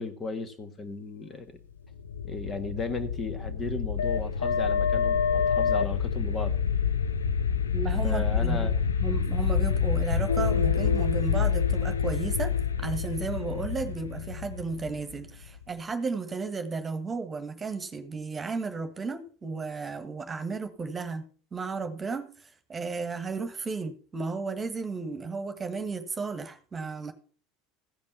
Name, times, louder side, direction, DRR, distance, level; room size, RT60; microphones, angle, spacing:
voice 1, 0.0-1.6 2.2-6.6 8.0-8.7, left 3 dB, 30° left, 10 dB, 1.5 m, -35 dB
sound 1, 1.9-15.6, left 6 dB, 85° left, 0.5 m, -27 dB
voice 2, 7.7-8.7 9.0-12.5 12.8-21.3 21.5-27.1, right 4 dB, 25° right, 8 dB, 1.6 m, -34 dB
15.0 x 5.3 x 5.8 m, 0.41 s
hypercardioid pair, 75°, 0 cm